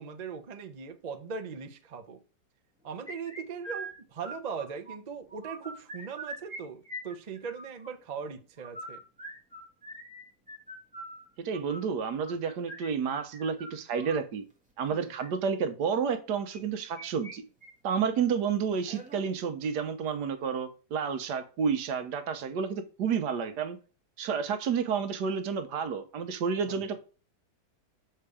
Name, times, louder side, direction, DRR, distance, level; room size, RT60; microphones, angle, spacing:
voice 1, 0.0-2.2 2.8-9.0 14.9-15.1 26.7-26.8, right 6 dB, 45° right, 0.5 m, -39 dB
sound 1, 3.1-5.0 5.3-6.6 6.9-7.9 8.6-14.2 15.0-15.3 16.5-17.4 17.6-17.7 18.2-18.3 18.9-19.2, right 1 dB, 5° right, 1.4 m, -43 dB
voice 2, 11.4-14.5 14.8-17.4 17.8-23.8 24.2-27.0, right 6 dB, 85° right, 1.4 m, -30 dB
6.7 x 4.4 x 4.8 m
omnidirectional pair, 1.8 m